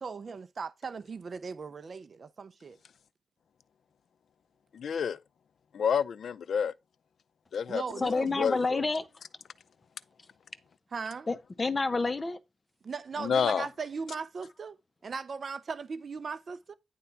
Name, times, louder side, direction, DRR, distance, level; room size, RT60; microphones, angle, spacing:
voice 1, 0.0-2.8 7.7-8.1 8.4-8.5 10.9-11.3 12.9-14.7 15.0-16.7, right 5 dB, 50° right, 0.5 m, -38 dB
voice 2, 4.7-5.2 5.7-6.7 7.5-8.8 13.1-13.7, left 7 dB, 70° left, 0.5 m, -29 dB
voice 3, 8.0-9.1 11.3-12.4, left 3 dB, 30° left, 0.8 m, -29 dB
10.0 x 3.4 x 5.6 m
wide cardioid pair, 105°, 0 cm